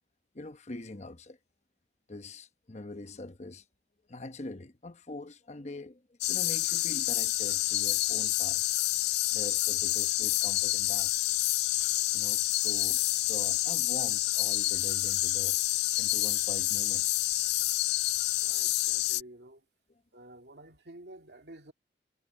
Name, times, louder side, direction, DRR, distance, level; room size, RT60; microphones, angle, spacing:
voice 1, 0.3-1.4 2.1-3.6 4.1-6.0 6.3-8.6 9.3-11.1 12.1-13.0 13.2-15.6 16.0-17.1, left 2 dB, 40° left, 0.9 m, -43 dB
sound 1, 6.2-19.2, left 17 dB, 65° left, 0.3 m, -28 dB
voice 2, 18.4-19.6 20.1-21.7, right 1 dB, 70° right, 2.2 m, -50 dB
head